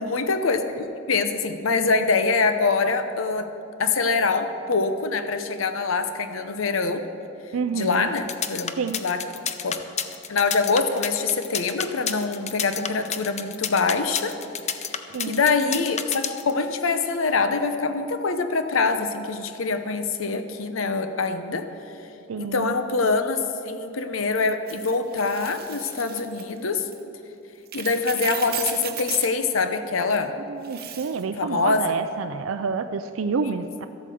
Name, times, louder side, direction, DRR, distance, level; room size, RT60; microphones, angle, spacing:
voice 1, 0.0-3.5 3.8-7.1 7.7-9.2 9.6-9.8 10.3-14.3 15.2-21.7 22.4-26.9 27.7-30.3 31.4-31.9 33.4-33.5, left 4 dB, 80° left, 8 dB, 0.7 m, -24 dB
voice 2, 7.5-8.1 8.8-9.0 15.1-15.4 22.3-22.8 30.5-33.9, right 5 dB, 80° right, 9 dB, 0.4 m, -28 dB
sound 1, 8.2-16.5, left 8 dB, 35° left, 0.6 m, -29 dB
sound 2, 24.7-26.5 26.9-27.0 27.7-29.3 30.6-31.2, right 10 dB, 50° right, 0.9 m, -35 dB
13.5 x 8.4 x 6.9 m, 2.8 s
head